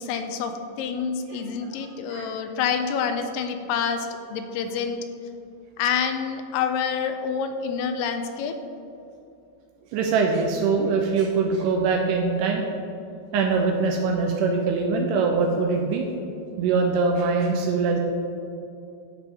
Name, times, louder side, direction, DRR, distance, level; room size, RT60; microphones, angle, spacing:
voice 1, 0.0-5.0 5.8-8.5, left 6 dB, 85° left, 7 dB, 2.2 m, -27 dB
voice 2, 9.9-12.6 13.3-16.1 16.6-18.0, right 4 dB, 80° right, 1 dB, 2.1 m, -23 dB
12.5 x 5.2 x 3.5 m, 2.7 s
omnidirectional pair, 3.9 m